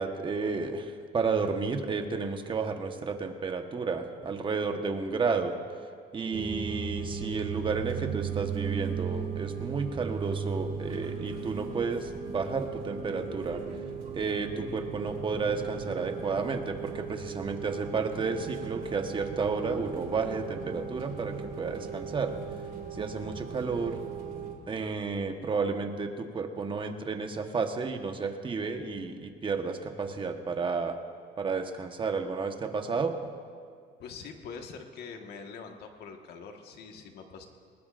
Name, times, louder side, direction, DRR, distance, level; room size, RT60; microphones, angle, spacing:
voice 1, 0.0-5.5 6.1-13.6 14.1-22.3 22.9-24.0 24.7-31.0 31.4-33.1, right 4 dB, 30° right, 5 dB, 1.3 m, -32 dB
sound 1, 6.3-24.5, right 6 dB, 55° right, 2.4 m, -37 dB
voice 2, 34.0-37.5, left 5 dB, 70° left, 3 dB, 1.7 m, -44 dB
20.0 x 20.0 x 2.6 m, 2.2 s
cardioid pair, 110°, 17 cm